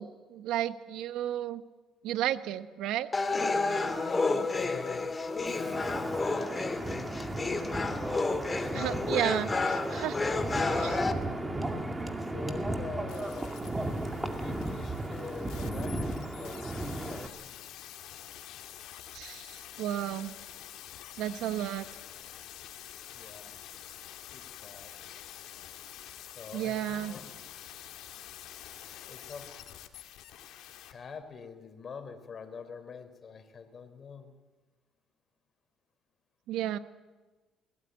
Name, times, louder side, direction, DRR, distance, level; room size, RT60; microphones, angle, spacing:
voice 1, 0.0-1.6 2.0-3.1 8.7-9.5 9.9-10.2 10.8-11.0 19.1-20.3 21.2-21.9 26.5-27.1 36.5-36.8, right 12 dB, 75° right, 13 dB, 1.0 m, -32 dB
sound 1, 3.1-11.1, left 3 dB, 25° left, 2.1 m, -31 dB
voice 2, 3.8-7.5 8.6-9.3 12.0-13.5 14.4-17.3 23.1-23.5 24.3-24.9 26.4-27.3 29.1-29.5 30.9-34.3, left 5 dB, 45° left, 8 dB, 3.6 m, -45 dB
Wind, 5.5-17.3, right 1 dB, 15° right, 2.3 m, -35 dB
sound 2, 13.1-30.9 31.2-31.3, left 11 dB, 75° left, 1.9 m, -47 dB
21.5 x 17.5 x 9.4 m, 1.3 s
supercardioid pair, 80°, 0 cm